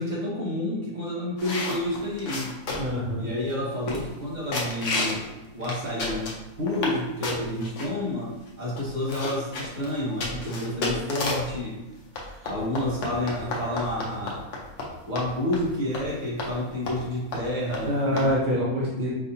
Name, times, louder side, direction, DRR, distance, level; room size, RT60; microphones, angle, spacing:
voice 1, 0.0-2.5 3.2-5.2 5.5-6.3 6.6-8.3 8.6-11.8 12.4-14.5 15.1-18.4, left 1 dB, 35° right, -5 dB, 1.1 m, -29 dB
sound 1, 1.4-3.0 3.5-3.6 3.9-4.2 4.5-5.2 5.6-7.0 7.2-7.9 8.5-8.6 8.8-11.5 12.2-14.9 15.2-15.3 15.5-15.7 15.9-16.1 16.4-16.5 16.9-17.1 17.3-17.4 17.7-17.8 18.2-18.3, left 2 dB, 60° left, 1.0 m, -31 dB
voice 2, 2.8-3.3 17.8-19.1, equal, 50° right, -5 dB, 0.6 m, -25 dB
4.7 x 2.8 x 2.6 m, 1.1 s
omnidirectional pair, 1.5 m